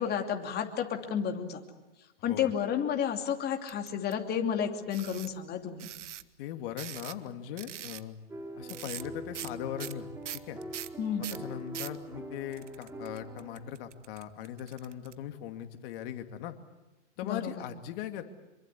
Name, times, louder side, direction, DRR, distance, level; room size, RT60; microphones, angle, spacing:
voice 1, 0.0-1.6 2.2-5.9 11.0-11.3 17.2-17.6, left 8 dB, 25° left, 4 dB, 2.8 m, -31 dB
sound 1, 3.7-4.1 4.9-5.3 5.8-6.2 6.8-7.3 7.6-8.0 8.7-9.1 9.3-9.5 9.8-12.0 12.5-15.1, right 11 dB, 80° right, 1.2 m, -42 dB
voice 2, 6.4-8.2 8.6-10.1 10.3-10.6 11.2-16.5 17.2-18.2, left 11 dB, 50° left, 6 dB, 2.4 m, -39 dB
sound 2, 8.3-13.7, right 1 dB, 5° right, 3.0 m, -43 dB
25.5 x 23.5 x 8.4 m, 1.0 s
hypercardioid pair, 130°, 36 cm